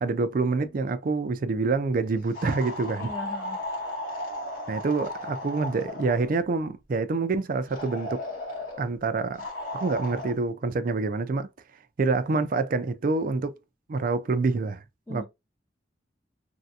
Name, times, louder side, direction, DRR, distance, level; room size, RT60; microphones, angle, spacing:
voice 1, 0.0-3.1 4.7-8.2 8.8-9.4 9.7-11.5 12.0-13.6 13.9-14.8 15.1-15.2, right 3 dB, 50° right, 0.4 m, -26 dB
sound 1, 2.3-6.3 7.7-8.9 9.4-10.3, left 1 dB, 45° left, 1.8 m, -35 dB
voice 2, 3.0-3.6 15.1-15.2, left 2 dB, 15° left, 1.3 m, -38 dB
3.2 x 2.6 x 2.7 m
head